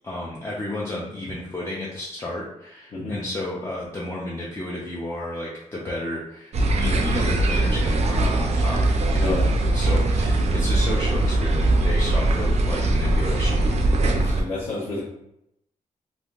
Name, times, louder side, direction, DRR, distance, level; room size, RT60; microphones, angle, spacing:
voice 1, 0.0-8.8 9.1-9.4 9.7-13.7, left 1 dB, 20° left, -5 dB, 0.5 m, -32 dB
sound 1, 6.5-14.4, right 2 dB, 55° right, 0.4 m, -21 dB
voice 2, 9.1-9.5 14.0-15.0, left 2 dB, 50° left, -9 dB, 0.8 m, -30 dB
3.5 x 2.5 x 2.4 m, 0.81 s
wide cardioid pair, 155°, 14 cm